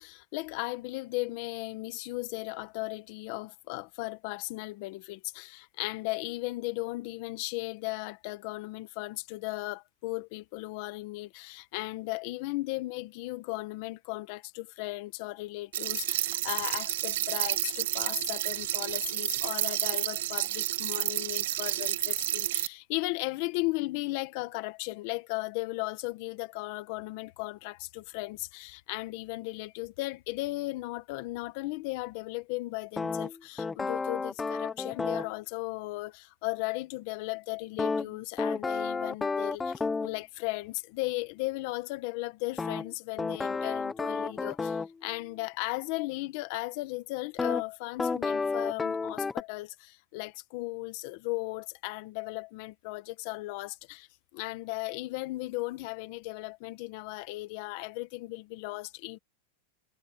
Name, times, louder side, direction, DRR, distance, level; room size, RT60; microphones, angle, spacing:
voice 1, 0.0-54.1 54.3-59.2, left 21 dB, 40° left, 1.4 m, -36 dB
sound 1, 15.7-22.7, right 13 dB, 65° right, 1.6 m, -30 dB
sound 2, 33.0-35.3 37.8-40.2 42.6-44.9 47.4-47.6 48.0-49.4, left 4 dB, 10° left, 0.6 m, -31 dB
supercardioid pair, 175°, 0 cm